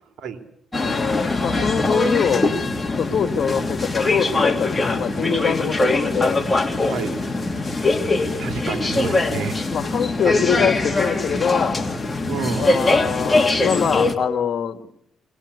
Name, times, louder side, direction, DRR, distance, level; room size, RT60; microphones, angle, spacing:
sound 1, 0.7-14.1, left 2 dB, 20° left, 2.7 m, -22 dB
voice 1, 0.8-2.5 3.0-6.4 8.6-8.7 9.7-11.7 12.6-14.8, left 7 dB, 55° left, 10 dB, 2.1 m, -23 dB
voice 2, 6.8-7.3 8.4-9.6 10.2-10.4 12.2-12.8, right 6 dB, 75° right, 7 dB, 2.9 m, -29 dB
21.5 x 19.5 x 8.3 m, 0.71 s
cardioid pair, 90°, 0 cm